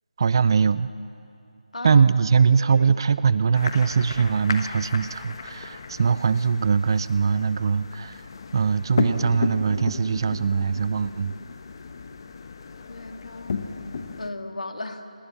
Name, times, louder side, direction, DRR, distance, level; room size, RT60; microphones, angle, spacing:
voice 1, 0.2-0.9 1.8-8.2 8.5-11.3, right 6 dB, 35° right, 16 dB, 0.5 m, -21 dB
voice 2, 2.6-2.9 12.9-13.6 14.2-15.1, left 2 dB, 75° left, 6 dB, 2.1 m, -36 dB
sound 1, 3.5-14.3, left 5 dB, 40° left, 1.2 m, -34 dB
26.0 x 19.0 x 7.3 m, 2.5 s
figure-of-eight pair, 160°, 4 cm